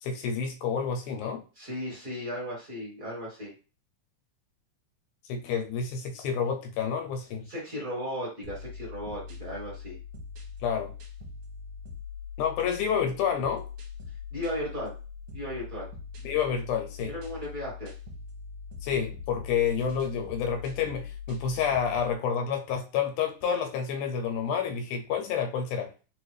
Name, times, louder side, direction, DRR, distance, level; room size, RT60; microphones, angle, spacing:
voice 1, 0.0-1.4 5.3-7.5 10.6-10.9 12.4-13.7 16.2-17.1 18.8-25.9, left 7 dB, 80° left, 2.1 m, -29 dB
voice 2, 1.5-3.5 7.5-10.0 14.3-14.9 15.3-15.9 17.1-17.9, equal, 35° right, 1.4 m, -35 dB
sound 1, 8.4-22.1, left 6 dB, 65° right, 2.1 m, -42 dB
4.7 x 2.5 x 3.2 m
omnidirectional pair, 3.6 m